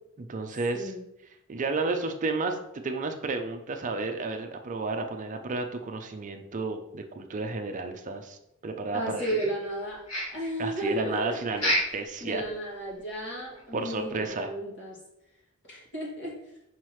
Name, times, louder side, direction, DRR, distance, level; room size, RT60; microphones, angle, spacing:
voice 1, 0.2-0.9 1.5-8.4 8.6-9.4 10.6-12.4 13.7-14.5, right 3 dB, 35° right, 5 dB, 0.4 m, -32 dB
voice 2, 0.7-1.0 8.9-10.0 10.3-11.6 12.2-15.0 15.7-16.4, right 1 dB, 55° left, -5 dB, 2.2 m, -33 dB
sound 1, 9.2-9.8 10.1-10.5 11.5-12.1 12.4-12.5 13.0-13.1 13.5-13.6, equal, 85° left, 2.4 m, -29 dB
5.8 x 5.5 x 3.1 m, 0.86 s
head